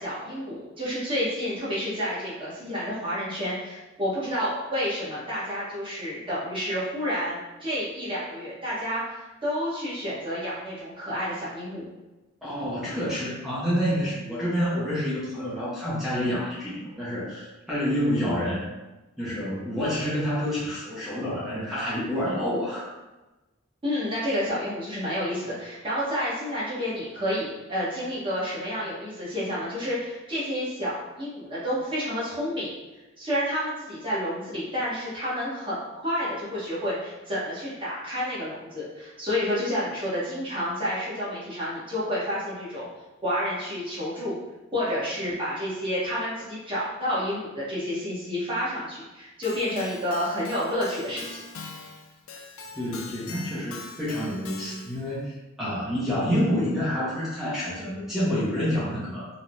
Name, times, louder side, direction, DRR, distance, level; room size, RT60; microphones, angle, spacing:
voice 1, 0.0-11.8 23.8-32.7 33.2-42.9 43.2-44.4 44.7-51.4, equal, 25° right, -9 dB, 1.0 m, -30 dB
voice 2, 12.4-18.7 19.2-22.9 52.8-59.3, equal, ahead, -10 dB, 0.6 m, -28 dB
Keyboard (musical), 49.4-55.1, left 4 dB, 80° left, 0.4 m, -42 dB
3.1 x 2.1 x 2.5 m, 1.1 s
head